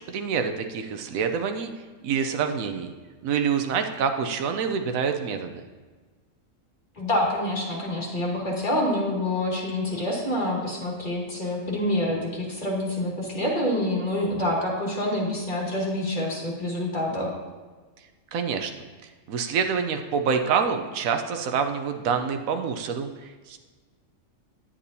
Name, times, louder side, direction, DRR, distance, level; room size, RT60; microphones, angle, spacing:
voice 1, 0.1-1.7 2.0-2.9 3.2-5.5 18.3-18.7 19.3-23.6, right 6 dB, 85° right, 6 dB, 1.1 m, -26 dB
voice 2, 7.0-17.3, left 1 dB, 30° left, -4 dB, 2.3 m, -27 dB
10.0 x 8.4 x 2.7 m, 1.4 s
omnidirectional pair, 1.4 m